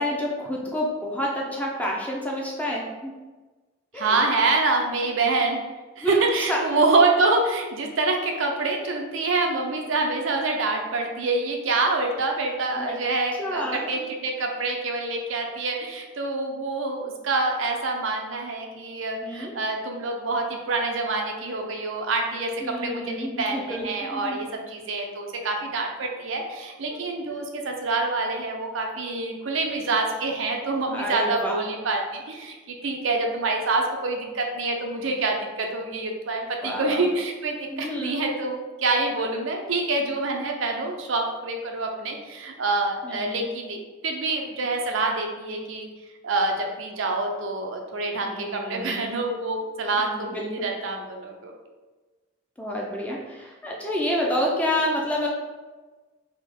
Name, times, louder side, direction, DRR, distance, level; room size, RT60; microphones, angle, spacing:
voice 1, 0.0-3.1 3.9-4.2 6.0-6.2 6.5-6.6 12.7-13.0 13.4-13.9 19.2-19.6 22.6-24.4 26.9-27.0 30.9-31.6 36.6-37.0 37.7-38.2 43.0-43.4 48.3-49.1 50.0-50.7 52.6-55.3, left 1 dB, 5° left, -2 dB, 0.6 m, -29 dB
voice 2, 3.9-5.6 6.0-45.9 46.2-51.5, right 3 dB, 75° right, 2 dB, 0.6 m, -26 dB
3.6 x 2.9 x 3.6 m, 1.3 s
head